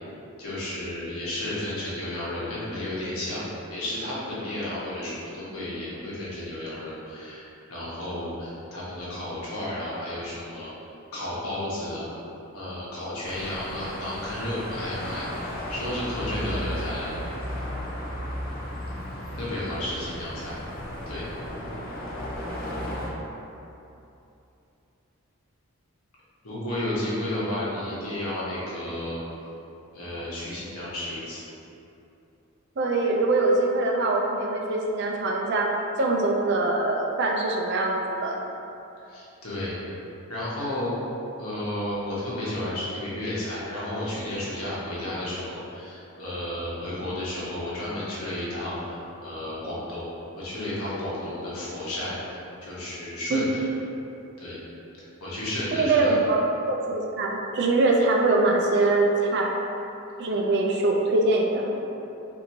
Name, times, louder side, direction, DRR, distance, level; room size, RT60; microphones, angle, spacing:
voice 1, 0.4-3.4 3.7-10.7 11.1-12.1 12.5-17.1 19.3-20.5 21.1-21.3 26.4-29.2 29.9-31.4 39.1-39.7 40.3-40.9 41.4-50.1 50.4-53.7 54.4-54.6 55.2-56.1, left 1 dB, 80° left, -8 dB, 1.0 m, -32 dB
sound 1, 13.2-23.1, equal, 40° left, 0.5 m, -34 dB
voice 2, 32.8-35.7 36.0-38.4 53.3-53.4 55.8-59.5 60.2-61.8, right 2 dB, 50° right, 0 dB, 0.4 m, -23 dB
4.3 x 2.7 x 2.7 m, 2.9 s
head